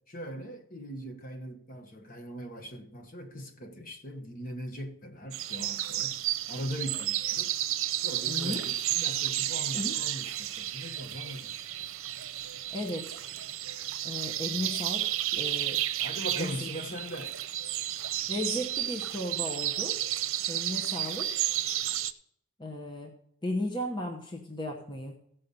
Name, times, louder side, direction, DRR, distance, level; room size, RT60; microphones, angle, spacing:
voice 1, 0.1-6.2 6.5-7.5 8.0-11.9 16.0-17.4, equal, 40° left, 1.3 m, -40 dB
sound 1, 5.3-22.1, right 13 dB, 90° right, 0.7 m, -32 dB
voice 2, 8.3-8.7 9.7-10.0 12.7-13.2 14.0-15.8 16.4-16.7 18.3-20.0 20.5-21.3 22.6-23.1 23.4-25.2, left 1 dB, 20° left, 1.0 m, -35 dB
16.0 x 5.6 x 5.4 m
head